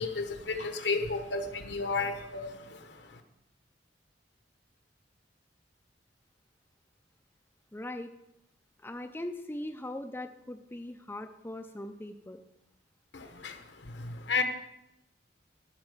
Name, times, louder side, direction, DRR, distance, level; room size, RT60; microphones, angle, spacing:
voice 1, 0.0-3.2 13.1-14.4, left 4 dB, 70° left, 7 dB, 1.2 m, -33 dB
voice 2, 7.7-8.1 8.8-12.4, left 1 dB, 10° left, 5 dB, 0.5 m, -40 dB
13.0 x 4.4 x 7.3 m, 0.84 s
head